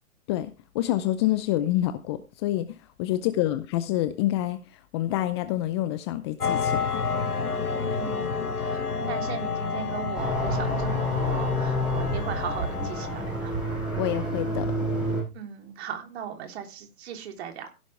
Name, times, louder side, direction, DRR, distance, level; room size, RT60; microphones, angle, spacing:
voice 1, 0.3-7.0 14.0-14.7, left 14 dB, 20° left, 0.6 m, -27 dB
sound 1, 6.4-13.5, left 5 dB, 80° left, 2.0 m, -30 dB
voice 2, 7.7-13.5 15.3-17.7, right 8 dB, 45° right, 3.5 m, -38 dB
sound 2, 10.1-15.2, equal, ahead, 7.9 m, -28 dB
16.0 x 11.5 x 3.4 m
figure-of-eight pair, 125°, 44 cm